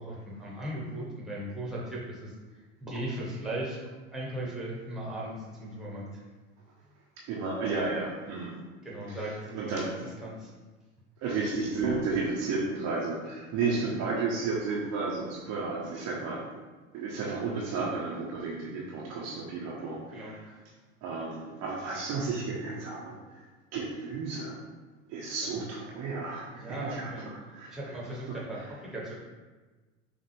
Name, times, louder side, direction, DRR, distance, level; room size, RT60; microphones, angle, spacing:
voice 1, 0.0-2.3 2.8-6.2 8.8-9.8 10.2-10.5 20.1-20.6 26.5-27.3 27.7-29.2, right 1 dB, ahead, -5 dB, 1.4 m, -37 dB
voice 2, 7.3-8.5 9.1-9.2 9.5-9.9 11.2-16.4 16.9-20.5 21.0-23.2 23.7-24.6 25.1-27.1 27.5-27.7 28.3-28.4, right 4 dB, 40° right, -4 dB, 0.9 m, -32 dB
5.9 x 2.5 x 3.3 m, 1.3 s
figure-of-eight pair, 80°, 40 cm